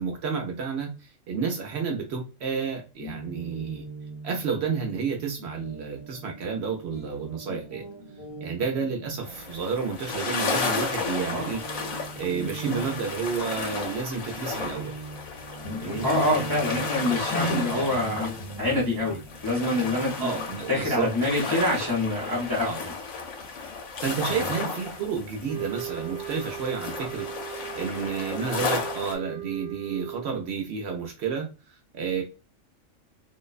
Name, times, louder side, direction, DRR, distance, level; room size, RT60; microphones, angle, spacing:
voice 1, 0.0-3.8 4.2-7.8 8.4-11.6 12.2-14.9 15.8-16.1 17.1-17.9 20.2-21.1 21.5-21.6 22.6-22.8 24.0-32.2, right 5 dB, 65° right, 2 dB, 0.8 m, -31 dB
Guitar, 3.0-10.7 11.0-21.4, right 1 dB, 45° left, 1.2 m, -40 dB
sound 1, 9.2-29.1, left 4 dB, 90° left, 1.0 m, -34 dB
voice 2, 16.0-18.3 18.6-20.3 20.7-22.9 24.2-24.5, left 1 dB, 25° left, -5 dB, 0.6 m, -26 dB
sound 2, 25.5-30.4, right 14 dB, 35° right, 0.4 m, -38 dB
2.5 x 2.1 x 2.3 m, 0.30 s
omnidirectional pair, 1.4 m